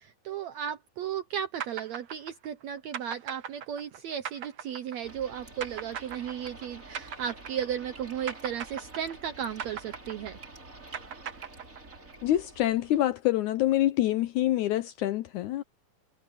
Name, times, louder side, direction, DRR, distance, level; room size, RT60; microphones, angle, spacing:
voice 1, 0.0-10.4, right 9 dB, 70° right, 1.7 m, -35 dB
sound 1, 1.6-8.0 8.3-12.1, right 8 dB, 55° right, 1.6 m, -39 dB
Cave Background sound, 5.0-13.2, right 2 dB, 20° right, 5.0 m, -48 dB
voice 2, 12.2-15.6, left 14 dB, 75° left, 1.8 m, -26 dB
omnidirectional pair, 4.1 m